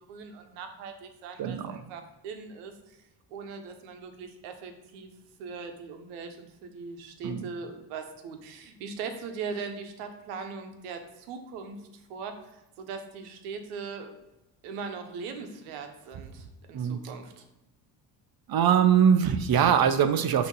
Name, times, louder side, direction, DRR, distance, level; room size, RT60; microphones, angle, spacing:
voice 1, 0.1-3.0 3.3-5.1 5.4-11.8 12.1-14.2 14.6-17.4, right 5 dB, 85° right, 6 dB, 1.1 m, -40 dB
voice 2, 1.4-1.8 7.2-7.5 16.7-17.0 18.5-20.5, right 8 dB, 45° right, 10 dB, 0.8 m, -22 dB
6.3 x 3.1 x 5.4 m, 0.96 s
supercardioid pair, 65°, 50 cm